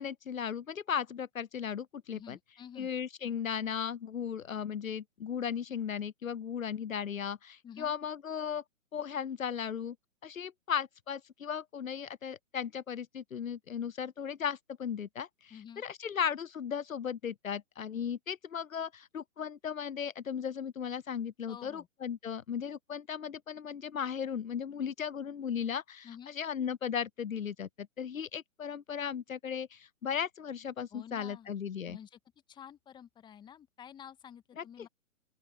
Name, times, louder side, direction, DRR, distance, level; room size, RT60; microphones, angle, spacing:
voice 1, 0.0-2.4 2.8-8.6 8.9-10.0 10.2-32.0 34.6-34.9, left 8 dB, 70° left, 0.8 m, -36 dB
voice 2, 2.1-2.9 7.6-7.9 15.5-15.8 21.5-21.9 26.0-26.3 30.9-31.5 31.9-32.2 32.5-34.9, left 9 dB, 10° left, 1.9 m, -50 dB
open air
figure-of-eight pair, 125°, 41 cm